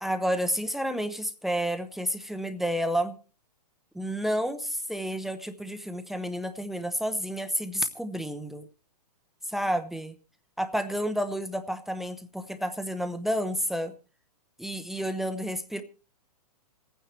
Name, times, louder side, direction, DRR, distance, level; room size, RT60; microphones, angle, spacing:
voice 1, 0.0-3.2 3.9-8.7 9.5-10.1 10.6-13.9 14.6-15.8, equal, ahead, 9 dB, 0.7 m, -30 dB
27.5 x 9.3 x 3.2 m, 0.35 s
hypercardioid pair, 135°, 20 cm